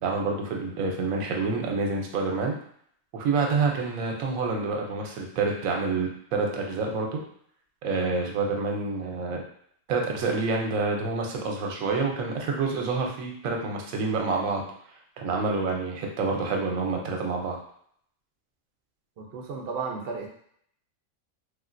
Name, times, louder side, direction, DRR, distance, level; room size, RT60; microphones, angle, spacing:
voice 1, 0.0-2.5 3.1-7.2 7.8-9.4 9.9-14.6 15.2-17.6, right 4 dB, 85° right, 1 dB, 1.0 m, -27 dB
voice 2, 19.2-20.3, right 5 dB, 60° right, 0 dB, 0.7 m, -33 dB
3.3 x 2.4 x 2.5 m, 0.66 s
omnidirectional pair, 1.4 m